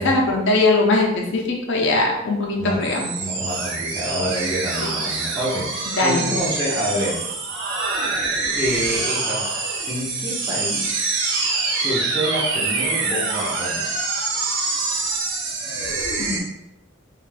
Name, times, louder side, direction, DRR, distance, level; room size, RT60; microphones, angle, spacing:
voice 1, 0.0-3.1 4.8-4.9 5.9-6.3 16.2-16.4, left 2 dB, 60° left, 0 dB, 0.5 m, -20 dB
voice 2, 2.6-7.3 8.6-11.1 11.7-13.9, equal, 20° right, -8 dB, 0.5 m, -27 dB
sound 1, 2.8-16.4, right 3 dB, 60° right, 0.5 m, -25 dB
2.5 x 2.3 x 3.2 m, 0.87 s
head